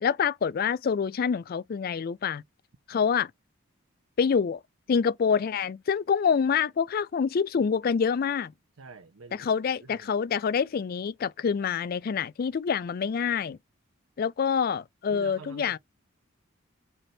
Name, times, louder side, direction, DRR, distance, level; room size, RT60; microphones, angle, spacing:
voice 1, 0.0-2.4 2.9-3.3 4.2-4.6 4.9-8.5 9.3-13.6 14.2-15.8, left 6 dB, 45° left, 0.3 m, -26 dB
voice 2, 8.8-9.5 9.8-10.1 15.1-15.8, right 4 dB, 80° right, 0.7 m, -47 dB
4.0 x 3.4 x 2.8 m
head